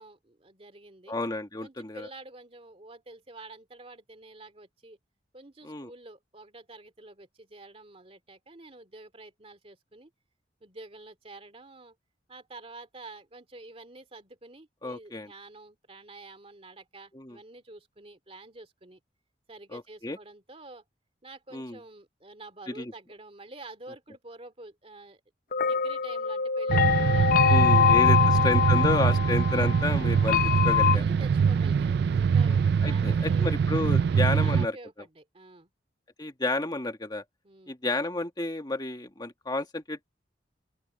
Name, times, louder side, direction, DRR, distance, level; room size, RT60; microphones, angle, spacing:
voice 1, 0.0-1.2 1.6-5.0 5.3-10.1 10.6-12.0 12.3-19.0 19.5-20.8 21.2-25.2 25.5-28.9 30.9-33.5 34.1-35.7 37.4-37.8, right 2 dB, 35° right, 2.5 m, -48 dB
voice 2, 1.1-2.1 5.6-5.9 14.8-15.3 17.1-17.4 19.7-20.2 21.5-21.8 22.7-22.9 27.5-30.4 30.6-31.0 32.5-34.8 36.2-37.2 37.7-40.0, left 2 dB, 25° left, 1.5 m, -31 dB
sound 1, 25.5-31.0, left 8 dB, 50° left, 0.6 m, -24 dB
sound 2, 26.7-34.7, right 6 dB, 60° right, 0.3 m, -23 dB
open air
head